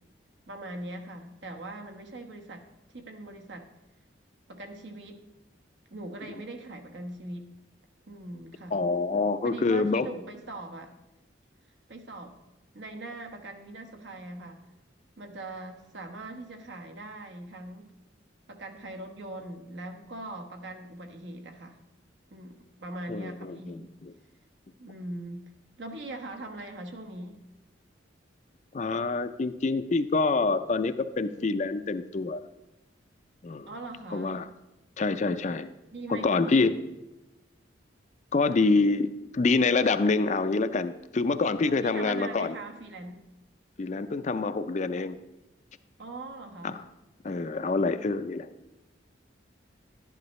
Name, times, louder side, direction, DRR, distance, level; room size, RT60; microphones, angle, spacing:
voice 1, 0.5-3.7 4.5-5.2 5.9-7.5 8.1-8.8 9.4-10.9 11.9-12.3 12.7-14.6 15.2-17.9 18.5-21.8 22.3-23.9 24.8-25.4 25.8-27.4 33.7-34.4 35.9-36.7 41.6-43.2 46.0-46.8, right 2 dB, 65° right, 4 dB, 1.1 m, -41 dB
voice 2, 8.7-10.1 23.1-24.1 28.7-32.4 33.4-33.7 34.1-34.5 35.0-35.7 36.1-36.7 38.3-42.5 43.8-45.2 46.6-46.7 47.2-48.5, left 3 dB, 40° left, 11 dB, 0.4 m, -26 dB
11.5 x 10.5 x 3.1 m, 0.98 s
head